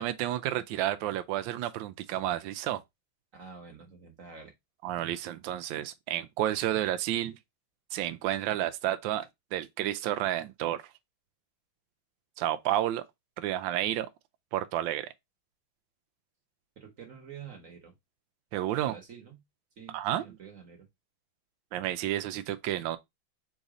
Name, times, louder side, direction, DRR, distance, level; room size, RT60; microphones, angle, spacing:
voice 1, 0.0-2.8 4.8-7.4 7.9-10.8 12.4-13.0 13.4-14.1 14.5-15.1 18.5-19.0 19.9-20.2 21.7-23.0, right 13 dB, 75° right, 1.2 m, -31 dB
voice 2, 3.3-4.5 16.8-17.9 18.7-19.4 19.8-20.9, right 6 dB, 45° right, 1.4 m, -48 dB
3.9 x 2.7 x 4.8 m
omnidirectional pair, 2.3 m